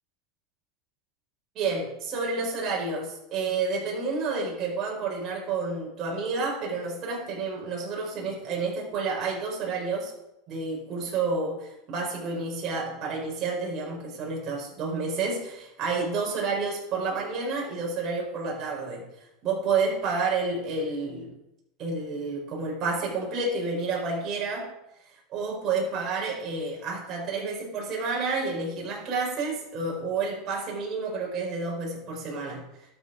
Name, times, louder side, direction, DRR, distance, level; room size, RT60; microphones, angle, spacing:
voice 1, 1.5-10.1 10.5-19.1 19.4-21.3 21.8-24.7 25.3-32.7, right 4 dB, 40° right, -3 dB, 5.0 m, -30 dB
12.0 x 7.3 x 5.1 m, 0.86 s
supercardioid pair, 125°, 0 cm